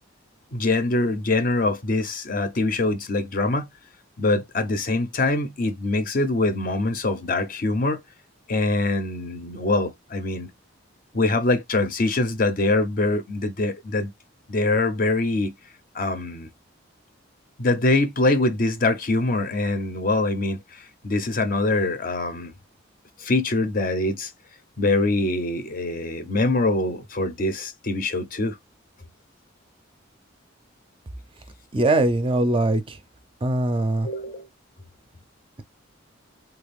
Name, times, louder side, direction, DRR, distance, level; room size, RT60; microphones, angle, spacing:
voice 1, 0.5-3.7 4.2-8.0 8.5-10.5 11.1-14.1 14.5-15.5 15.9-16.5 17.6-22.5 23.2-24.3 24.8-28.6 34.0-34.4, left 2 dB, 45° left, 0.6 m, -24 dB
voice 2, 31.7-33.0 33.4-34.1, right 2 dB, 25° right, 0.4 m, -21 dB
3.2 x 2.3 x 3.4 m
head